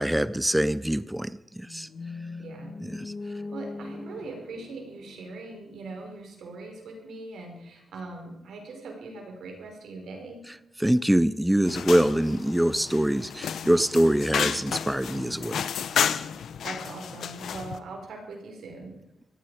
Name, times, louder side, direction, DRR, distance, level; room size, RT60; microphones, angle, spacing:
voice 1, 0.0-1.9 2.8-3.1 10.5-15.7, right 1 dB, 5° right, 16 dB, 0.5 m, -24 dB
sound 1, 1.6-5.8, left 3 dB, 50° left, 1.4 m, -40 dB
voice 2, 2.4-2.8 3.3-10.5 16.6-19.0, right 3 dB, 85° right, 2 dB, 5.2 m, -41 dB
sound 2, 11.6-17.8, left 8 dB, 80° left, 0.9 m, -31 dB
18.0 x 15.0 x 5.0 m, 0.86 s
cardioid pair, 95°, 0 cm